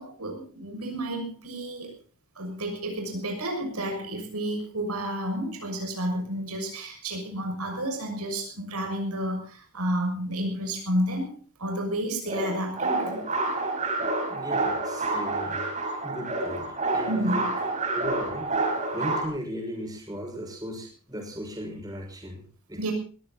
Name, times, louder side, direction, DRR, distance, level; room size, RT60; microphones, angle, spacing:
voice 1, 0.0-1.9 2.4-11.3 11.6-13.2 17.1-17.5 22.8-22.9, right 1 dB, 85° right, 4 dB, 6.6 m, -31 dB
sound 1, 12.3-19.3, right 2 dB, 35° right, 4.7 m, -28 dB
voice 2, 14.3-15.7 16.0-17.4 17.9-18.5 18.9-22.9, equal, 15° right, 1 dB, 6.2 m, -37 dB
20.5 x 16.0 x 4.1 m, 0.38 s
head